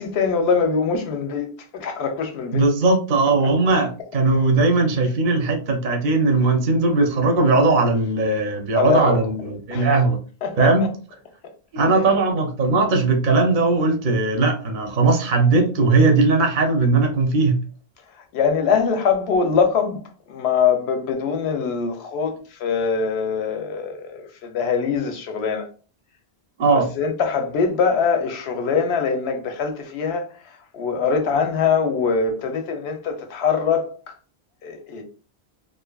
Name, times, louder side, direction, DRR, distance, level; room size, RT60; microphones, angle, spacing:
voice 1, 0.0-1.5 1.7-2.7 3.4-3.5 4.3-4.5 8.7-9.2 9.7-9.9 10.4-10.9 18.3-20.0 20.3-25.7 27.0-34.1 34.6-35.0, left 5 dB, 90° left, 0.9 m, -23 dB
voice 2, 2.5-10.2 10.6-10.9 11.7-17.6 26.6-26.9, right 3 dB, 55° right, 0.7 m, -19 dB
2.6 x 2.4 x 2.2 m
omnidirectional pair, 1.1 m